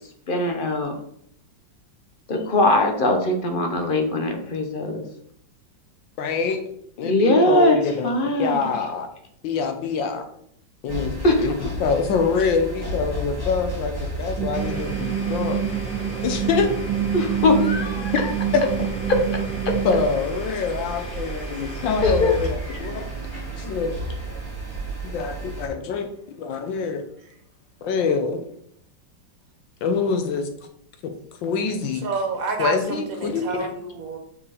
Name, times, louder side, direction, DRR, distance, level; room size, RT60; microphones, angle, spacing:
voice 1, 0.3-0.9 2.3-5.0 7.0-7.8 8.0-8.6 11.2-11.5 17.1-18.3 19.1-19.2 19.6-19.7 22.0-22.3, left 2 dB, 45° left, 4 dB, 0.7 m, -21 dB
voice 2, 6.2-6.6 7.0-9.1 9.4-10.3 10.8-15.6 16.2-16.7 18.1-18.2 18.5-18.6 19.9-23.0 23.6-24.0 25.1-26.1 26.4-27.0 27.8-28.4 29.8-30.5 31.0-31.1 31.4-32.0 32.6-33.7, left 5 dB, 80° left, 7 dB, 1.6 m, -25 dB
sound 1, 10.9-25.7, right 2 dB, 10° left, 2.5 m, -33 dB
sound 2, 14.4-20.1, right 9 dB, 75° right, 1.2 m, -27 dB
Domestic sounds home sounds, 14.5-26.2, left 2 dB, 60° left, 2.8 m, -41 dB
voice 3, 32.0-34.2, right 4 dB, 50° right, 3 dB, 1.5 m, -29 dB
5.9 x 4.8 x 4.1 m, 0.68 s
omnidirectional pair, 2.0 m